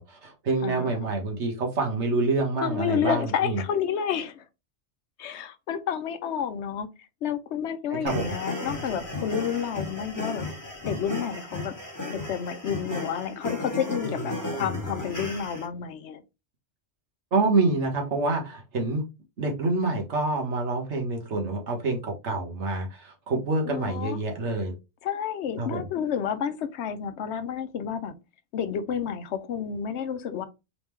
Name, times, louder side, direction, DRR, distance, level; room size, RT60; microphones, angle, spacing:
voice 1, 0.0-3.6 7.9-8.4 17.3-19.0 19.4-24.7 25.6-25.9, right 3 dB, 75° right, 1.5 m, -27 dB
voice 2, 0.6-1.1 2.6-4.4 5.2-6.9 7.2-10.5 10.8-11.7 12.1-16.2 23.6-24.2 25.0-28.2 28.5-30.4, left 8 dB, 75° left, 0.9 m, -30 dB
sound 1, 8.1-15.7, left 2 dB, 15° left, 1.3 m, -34 dB
4.0 x 3.5 x 3.1 m
omnidirectional pair, 1.2 m